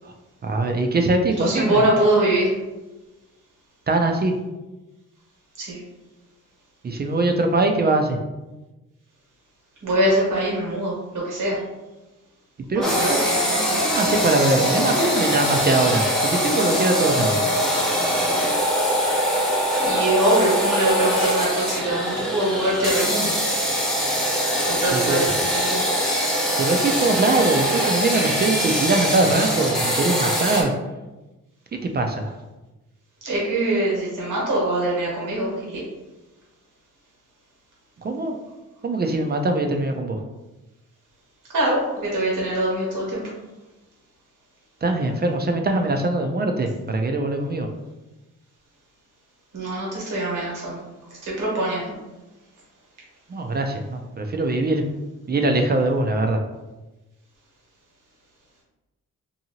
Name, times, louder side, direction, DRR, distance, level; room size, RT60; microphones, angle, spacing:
voice 1, 0.4-1.8 3.9-4.3 6.8-8.2 12.7-13.2 13.9-17.6 24.9-25.2 26.6-30.7 31.8-32.3 38.0-38.4 38.8-40.2 44.8-47.7 53.3-54.8 55.3-56.4, right 2 dB, 35° right, 4 dB, 0.4 m, -22 dB
voice 2, 1.4-2.5 5.6-5.8 9.8-11.6 12.7-13.8 19.8-23.4 24.7-25.8 33.2-35.8 41.5-43.3 49.5-50.8 51.2-51.9, right 1 dB, 85° right, -4 dB, 1.2 m, -23 dB
sound 1, 12.8-30.6, equal, ahead, 0.8 m, -22 dB
2.7 x 2.6 x 2.8 m, 1.1 s
cardioid pair, 60°, 31 cm